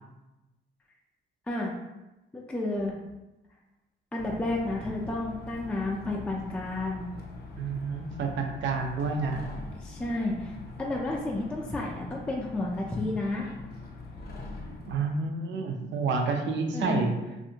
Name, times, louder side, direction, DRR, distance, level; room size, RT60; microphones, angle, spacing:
voice 1, 2.3-2.9 4.1-7.1 9.8-13.5 16.7-17.1, left 2 dB, 5° left, -2 dB, 0.3 m, -31 dB
sound 1, 4.2-15.0, left 3 dB, 50° left, 0.6 m, -43 dB
voice 2, 7.6-9.4 14.9-17.2, right 4 dB, 70° right, 3 dB, 0.5 m, -29 dB
2.6 x 2.4 x 2.7 m, 1.0 s
cardioid pair, 90°, 20 cm